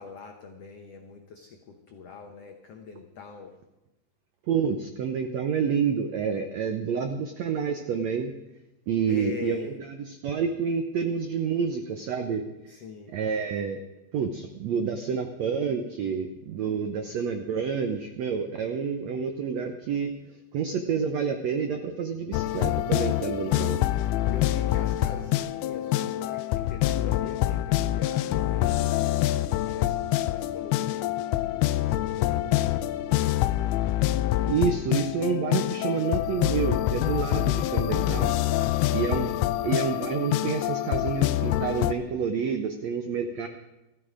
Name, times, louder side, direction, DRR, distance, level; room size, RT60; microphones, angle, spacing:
voice 1, 0.0-3.5 9.1-9.8 12.7-13.1 23.4-23.8 24.2-33.7 38.5-39.2, left 5 dB, 70° left, 3 dB, 1.5 m, -43 dB
voice 2, 4.5-8.3 8.9-9.6 10.2-12.4 13.1-13.8 14.1-20.1 20.5-23.8 34.5-38.3 38.9-39.3 39.6-43.5, right 6 dB, 85° right, 6 dB, 1.5 m, -28 dB
sound 1, 22.3-41.9, left 14 dB, 90° left, 2.5 m, -26 dB
16.0 x 14.0 x 5.0 m, 0.98 s
omnidirectional pair, 4.3 m